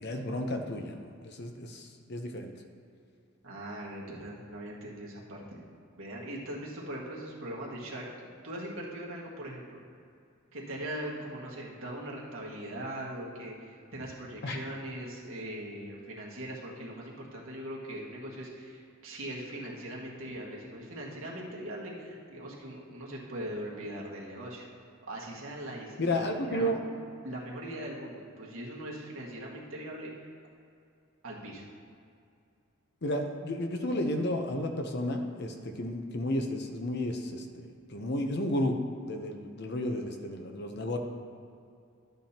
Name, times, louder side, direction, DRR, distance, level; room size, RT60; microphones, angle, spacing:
voice 1, 0.0-2.5 14.4-14.6 26.0-26.8 33.0-38.8 39.1-41.0, left 1 dB, 50° left, 4 dB, 0.8 m, -32 dB
voice 2, 3.4-5.6 6.0-9.8 10.5-24.7 25.0-30.1 31.2-31.6, right 1 dB, 70° right, -4 dB, 1.8 m, -40 dB
12.5 x 8.9 x 2.9 m, 2.4 s
head